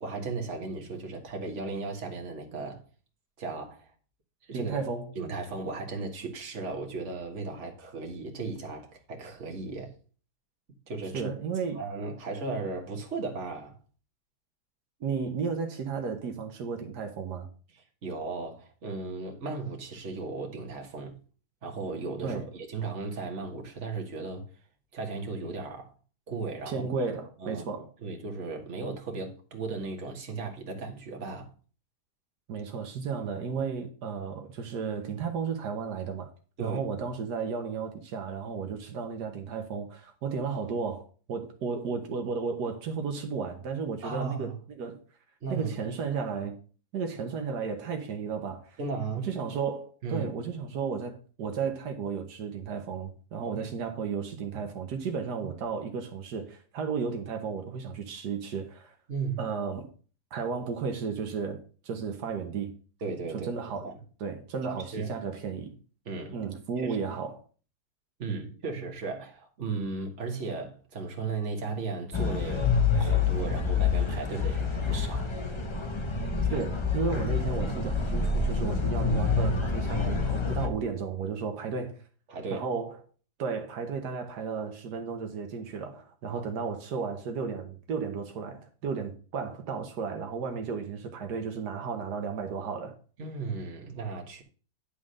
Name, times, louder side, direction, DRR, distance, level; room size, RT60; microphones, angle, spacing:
voice 1, 0.0-2.8 3.4-3.9 4.4-4.8 5.2-10.0 10.9-11.3 11.7-13.8 18.0-21.2 21.6-24.5 24.9-25.9 26.3-26.8 27.4-31.5 36.6-36.8 44.0-44.5 45.4-45.8 48.8-49.3 50.0-50.3 59.1-59.4 63.0-63.5 63.8-63.9 64.6-65.1 66.1-66.4 66.8-67.0 68.2-75.3 82.3-82.7 86.3-86.4 93.2-94.4, right 4 dB, 45° right, 1.8 m, -36 dB
voice 2, 4.5-5.1 11.1-11.8 15.0-17.5 22.2-22.5 26.7-27.9 32.5-36.3 36.6-45.0 45.5-46.6 46.9-48.8 49.2-59.0 59.4-59.9 60.3-62.7 63.3-63.9 64.2-65.7 66.3-67.3 76.5-82.0 82.5-83.0 83.4-93.0, right 5 dB, 85° right, 1.6 m, -33 dB
sound 1, 72.1-80.7, left 5 dB, 25° left, 0.7 m, -27 dB
10.0 x 3.7 x 6.4 m
omnidirectional pair, 1.7 m